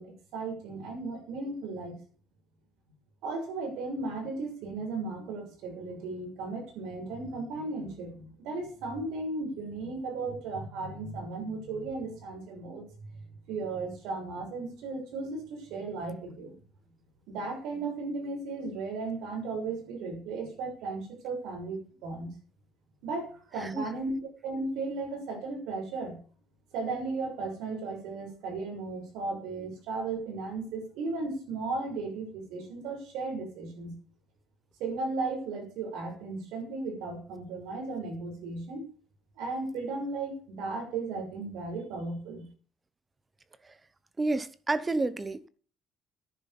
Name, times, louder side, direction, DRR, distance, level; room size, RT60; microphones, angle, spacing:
voice 1, 0.0-2.0 3.2-16.5 17.3-22.3 23.0-26.2 26.7-34.0 34.8-38.8 39.4-42.5, right 3 dB, 70° right, 6.4 m, -35 dB
voice 2, 44.2-45.5, right 2 dB, 15° right, 0.7 m, -30 dB
10.5 x 10.5 x 7.0 m
cardioid pair, 180°, 0 cm